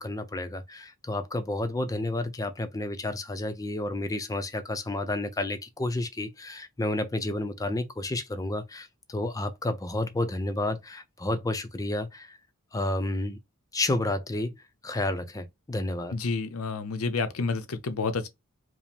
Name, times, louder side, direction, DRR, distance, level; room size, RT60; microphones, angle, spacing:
voice 1, 0.0-12.4 12.7-13.4 13.7-14.5 14.8-16.2, left 2 dB, 15° left, 0.5 m, -31 dB
voice 2, 16.1-18.3, left 4 dB, 70° left, 0.6 m, -29 dB
4.9 x 2.1 x 3.4 m
head